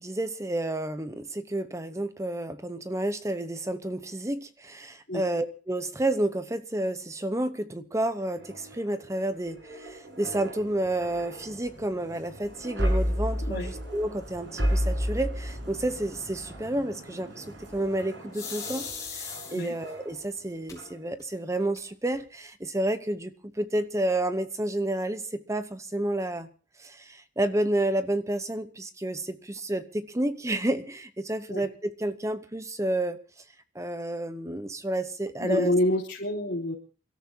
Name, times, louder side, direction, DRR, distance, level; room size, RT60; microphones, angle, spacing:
voice 1, 0.0-17.4 17.7-26.5 26.8-33.2 33.7-35.7, right 1 dB, 15° right, 0.8 m, -30 dB
sound 1, 8.1-20.4 20.8-21.0, equal, 65° right, 6.8 m, -34 dB
sound 2, 18.3-19.9 20.7-20.8 21.2-21.3 21.6-22.2, left 6 dB, 20° left, 4.6 m, -38 dB
voice 2, 35.4-36.7, left 1 dB, 55° left, 3.7 m, -27 dB
28.5 x 13.5 x 2.8 m
head